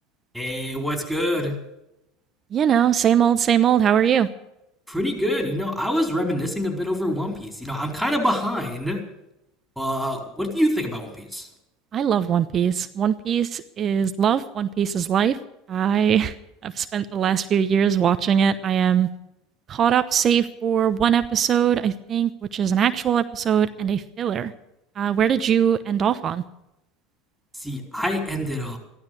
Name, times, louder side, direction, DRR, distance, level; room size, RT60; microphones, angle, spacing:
voice 1, 0.3-1.5 4.9-9.0 9.8-11.5 27.6-28.8, equal, ahead, 3 dB, 4.6 m, -26 dB
voice 2, 2.5-4.3 11.9-15.4 15.7-16.3 16.6-19.1 19.7-24.5 25.0-26.4, right 8 dB, 40° right, 11 dB, 0.9 m, -21 dB
14.5 x 12.5 x 6.8 m, 0.88 s
hypercardioid pair, 90°, 0 cm